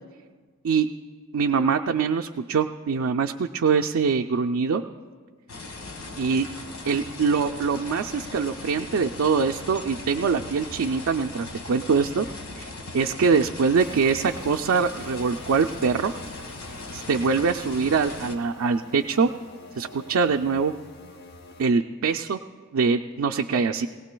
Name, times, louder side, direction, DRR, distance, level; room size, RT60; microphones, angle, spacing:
voice 1, 1.3-4.8 6.2-6.5 6.9-12.3 12.6-16.1 16.9-19.3 19.8-20.7 21.6-22.4 22.7-23.9, right 5 dB, 70° right, 4 dB, 0.4 m, -23 dB
sound 1, 5.5-18.3, left 2 dB, 85° left, 1.6 m, -39 dB
sound 2, 13.7-21.6, left 2 dB, 45° left, 0.7 m, -46 dB
21.0 x 18.0 x 2.3 m, 1.5 s
head